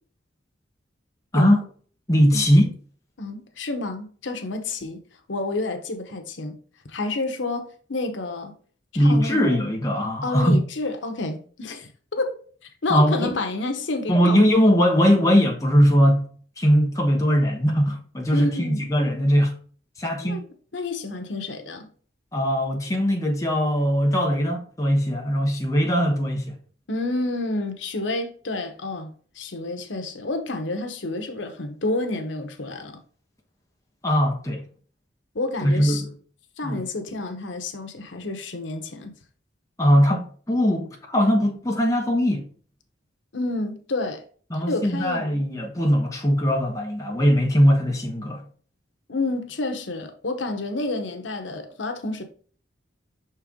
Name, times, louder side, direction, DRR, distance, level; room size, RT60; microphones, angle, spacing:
voice 1, 2.1-2.6 8.9-10.6 12.9-13.4 14.1-16.3 16.6-19.6 20.0-20.4 22.3-26.5 34.0-34.6 35.6-36.0 36.6-36.8 39.8-42.5 44.5-48.4, equal, 15° left, 1.1 m, -20 dB
voice 2, 3.2-5.0 5.3-6.6 6.9-8.5 8.9-9.4 10.2-12.4 12.8-14.4 18.3-18.8 20.2-20.4 20.7-21.9 26.9-29.1 29.3-33.0 35.3-36.0 36.6-39.1 43.3-44.2 44.5-45.4 49.1-52.2, left 2 dB, 85° left, 1.0 m, -29 dB
5.9 x 4.4 x 3.7 m
head